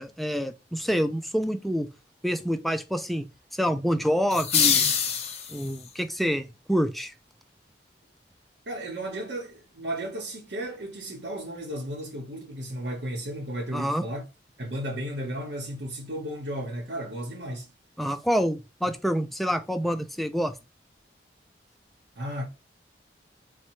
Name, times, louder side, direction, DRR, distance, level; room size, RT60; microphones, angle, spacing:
voice 1, 0.0-1.9 2.2-3.3 3.5-4.9 5.5-7.1 13.7-14.0 18.0-20.5, equal, ahead, 0.3 m, -27 dB
sound 1, 4.3-5.9, left 7 dB, 35° left, 0.7 m, -24 dB
voice 2, 8.7-14.2 14.6-17.7 18.9-19.0 22.2-22.5, right 1 dB, 80° right, 1.0 m, -34 dB
4.1 x 2.2 x 4.6 m
head